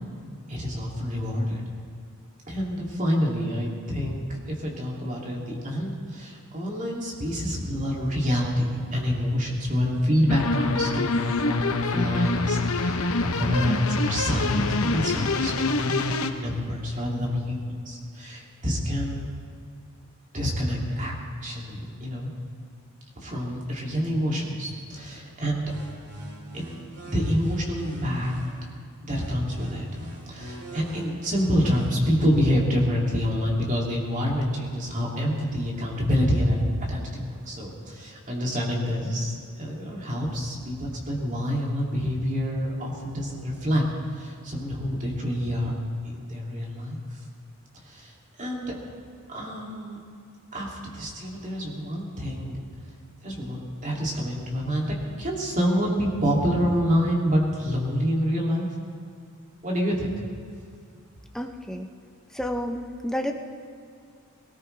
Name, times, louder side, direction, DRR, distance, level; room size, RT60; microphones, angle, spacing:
voice 1, 0.5-1.6 2.5-4.2 4.5-11.1 11.4-19.3 20.3-21.1 21.4-22.3 23.2-25.7 26.5-26.6 27.1-28.3 29.0-29.9 30.3-43.8 44.2-45.7 46.0-47.0 47.8-48.1 48.4-48.7 49.3-50.0 50.5-52.6 53.2-58.7 59.6-60.1, equal, 35° right, -3 dB, 2.8 m, -27 dB
sound 1, 10.3-16.3, left 3 dB, 75° left, 0.9 m, -26 dB
sound 2, 25.7-28.7 29.1-32.1, right 1 dB, 55° right, 2.5 m, -43 dB
voice 2, 61.3-61.9 62.3-63.3, equal, ahead, 3 dB, 0.8 m, -30 dB
20.5 x 18.0 x 3.4 m, 2.3 s
head